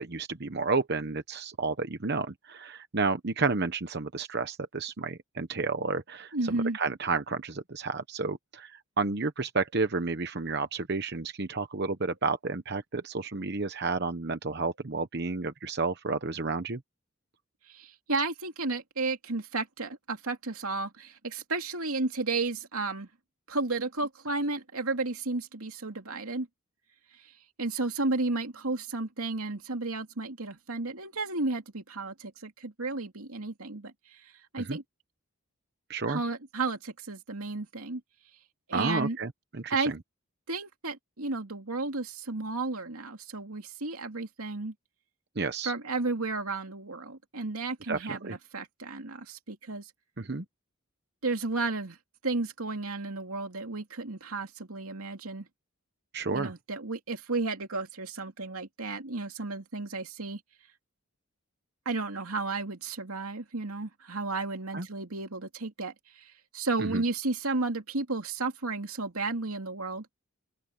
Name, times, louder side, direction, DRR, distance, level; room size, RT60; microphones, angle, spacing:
voice 1, 0.0-16.8 34.7-34.8 35.9-36.2 38.7-40.0 45.4-45.7 47.9-48.3 50.2-50.4 56.1-56.5 64.7-64.9 66.8-67.0, right 3 dB, 50° right, 1.0 m, -31 dB
voice 2, 6.3-6.8 17.7-23.1 23.5-26.5 27.2-27.3 27.6-34.8 36.1-38.0 38.7-39.2 39.7-39.9 40.5-44.7 45.6-49.9 51.2-52.0 52.2-55.5 56.3-60.4 61.8-70.1, right 3 dB, 90° right, 2.7 m, -33 dB
open air
head